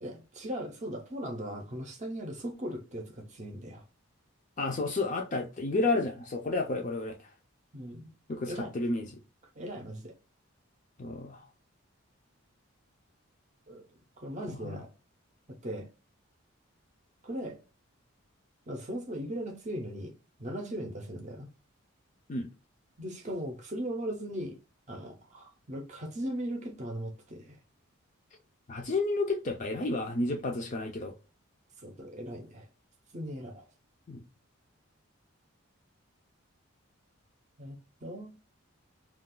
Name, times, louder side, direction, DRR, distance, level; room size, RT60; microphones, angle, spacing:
voice 1, 0.0-3.8 7.7-8.1 8.5-8.7 9.6-10.2 13.7-13.9 14.2-14.9 15.5-15.9 17.2-17.6 18.7-20.1 20.4-21.5 23.0-24.6 24.9-27.6 31.8-32.7 33.1-33.7 37.6-38.4, equal, 35° right, 0.6 m, -38 dB
voice 2, 4.6-7.2 8.3-9.1 11.0-11.4 14.5-14.8 22.3-22.5 28.7-31.1 34.1-34.2, left 2 dB, 35° left, 0.4 m, -31 dB
2.4 x 2.3 x 3.6 m
head